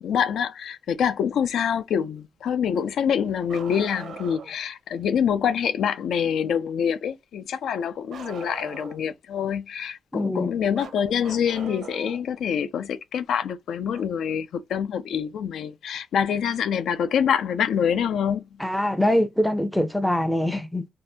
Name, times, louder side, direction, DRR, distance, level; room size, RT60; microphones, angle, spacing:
voice 1, 0.0-18.4, left 8 dB, 75° left, 0.4 m, -26 dB
Bark, 3.5-4.6 8.1-9.1 10.7-12.3 13.9-14.0 15.9-16.0 17.1-17.2, right 6 dB, 60° right, 0.6 m, -40 dB
voice 2, 10.1-10.5 18.6-20.9, left 1 dB, ahead, 0.4 m, -23 dB
2.7 x 2.5 x 3.3 m
wide cardioid pair, 165°, 0 cm